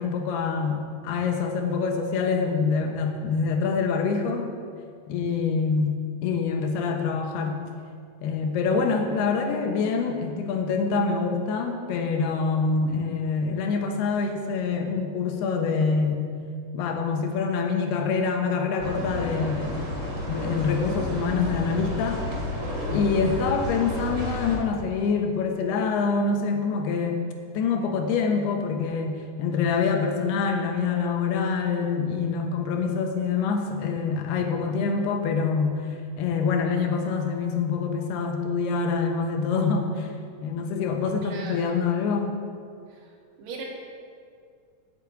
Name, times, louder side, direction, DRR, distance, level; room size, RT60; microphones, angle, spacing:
voice 1, 0.0-4.5 5.1-7.6 8.2-16.3 16.7-19.8 20.3-22.3 22.9-27.2 27.5-35.9 36.2-40.1 40.4-42.3, left 5 dB, 90° left, 4 dB, 3.1 m, -25 dB
sound 1, 18.8-24.6, left 1 dB, 35° right, 2.3 m, -31 dB
voice 2, 41.2-41.7 42.9-43.1 43.4-43.6, right 4 dB, 80° right, -1 dB, 3.8 m, -38 dB
8.7 x 8.3 x 8.4 m, 2.2 s
omnidirectional pair, 4.5 m